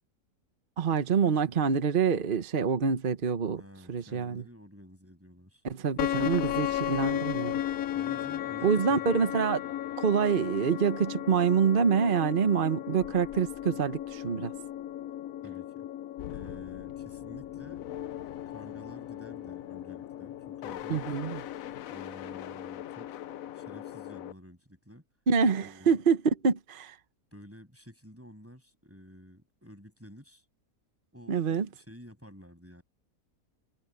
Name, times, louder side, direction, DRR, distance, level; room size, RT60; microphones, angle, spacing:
voice 1, 0.8-3.6 3.9-4.4 5.6-7.6 8.6-9.6 10.0-14.5 20.9-21.4 25.3-27.0 31.3-31.7, right 6 dB, 40° right, 1.0 m, -26 dB
voice 2, 3.6-5.6 7.9-9.1 15.4-15.9 16.3-17.9 18.5-21.1 21.9-23.1 23.5-25.1 25.6-26.0 27.3-30.4 31.1-32.8, equal, 10° right, 7.8 m, -51 dB
sound 1, 6.0-24.3, left 12 dB, 75° left, 1.1 m, -36 dB
omnidirectional pair, 1.5 m